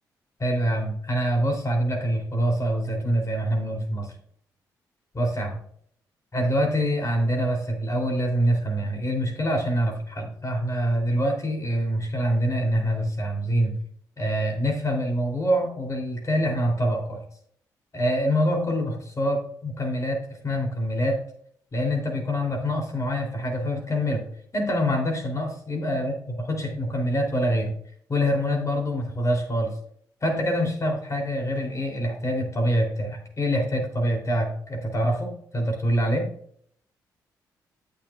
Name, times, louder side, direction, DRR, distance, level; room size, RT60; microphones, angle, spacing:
voice 1, 0.4-4.1 5.1-5.6 6.3-13.7 14.2-17.2 17.9-19.4 19.6-21.2 21.7-24.2 24.5-27.7 28.1-29.7 30.2-36.3, equal, 35° left, 2 dB, 3.0 m, -25 dB
13.5 x 6.6 x 2.3 m, 0.64 s
hypercardioid pair, 45°, 9 cm